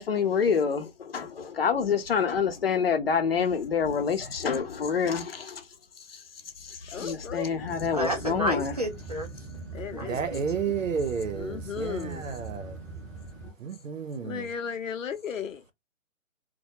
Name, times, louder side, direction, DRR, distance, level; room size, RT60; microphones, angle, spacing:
voice 1, 0.0-5.7 6.0-6.2 6.6-8.8 10.7-10.8, left 6 dB, 50° left, 0.6 m, -27 dB
voice 2, 6.9-7.5 9.7-10.3 11.3-12.3 14.2-15.6, left 7 dB, 85° left, 0.7 m, -35 dB
sound 1, 7.6-13.5, right 3 dB, 5° right, 0.9 m, -42 dB
voice 3, 7.9-9.3 9.9-10.4, right 1 dB, 35° right, 0.4 m, -30 dB
voice 4, 10.0-12.7 13.6-14.4, right 6 dB, 80° right, 0.7 m, -31 dB
2.2 x 2.2 x 2.7 m
hypercardioid pair, 160°, 38 cm